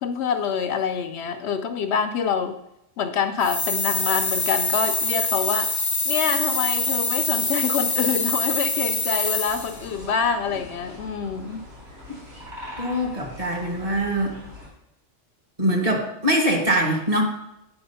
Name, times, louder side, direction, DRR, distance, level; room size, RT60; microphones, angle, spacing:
voice 1, 0.0-2.6 3.0-5.7 6.0-11.6, left 6 dB, 70° left, 8 dB, 0.8 m, -26 dB
sound 1, 3.4-9.8, left 3 dB, 20° left, 0.5 m, -25 dB
sound 2, 9.4-14.7, left 1 dB, 55° right, 3.1 m, -42 dB
voice 2, 12.8-14.3 15.6-17.2, right 1 dB, 30° right, 1 dB, 1.4 m, -23 dB
8.8 x 4.9 x 5.5 m, 0.84 s
omnidirectional pair, 1.3 m